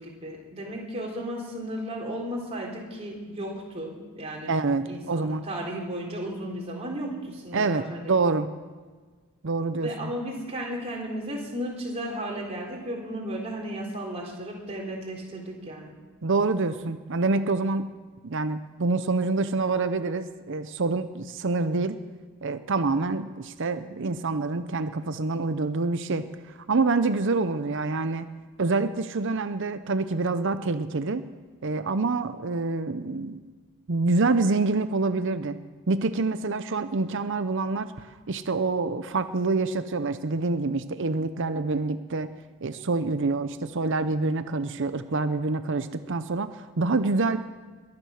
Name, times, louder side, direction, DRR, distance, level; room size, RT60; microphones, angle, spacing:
voice 1, 0.0-4.5 4.8-8.2 9.8-16.0, right 1 dB, 30° right, -2 dB, 3.9 m, -34 dB
voice 2, 4.5-5.4 7.5-8.5 9.4-10.1 16.2-17.9 18.2-22.0 22.4-26.3 26.6-28.3 28.6-31.2 31.6-33.4 33.9-35.6 35.9-42.3 42.6-47.4, right 3 dB, 55° right, 11 dB, 0.7 m, -26 dB
22.0 x 9.7 x 6.5 m, 1.5 s
head